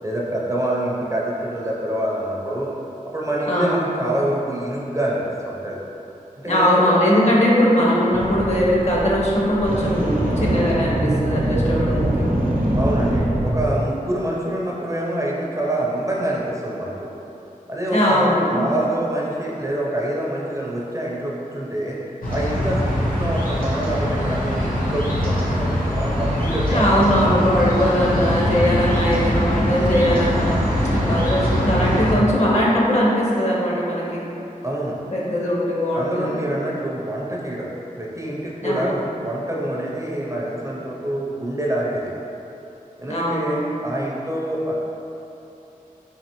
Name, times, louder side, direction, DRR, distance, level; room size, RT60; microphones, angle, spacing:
voice 1, 0.0-2.7 3.1-5.8 6.4-6.7 12.8-17.1 17.7-22.0 22.3-27.3 34.6-35.0 36.0-37.7 38.0-42.1 43.0-44.7, right 1 dB, 20° right, -4 dB, 0.5 m, -26 dB
voice 2, 3.5-3.9 6.4-12.3 17.9-18.7 26.7-34.2 35.1-36.4 38.6-38.9 43.1-43.7, equal, 50° left, -5 dB, 0.8 m, -20 dB
sound 1, 8.1-13.7, right 1 dB, 70° right, 0.7 m, -23 dB
sound 2, 22.2-32.2, equal, 90° left, 0.7 m, -22 dB
4.1 x 2.9 x 2.9 m, 2.9 s
wide cardioid pair, 65°, 15 cm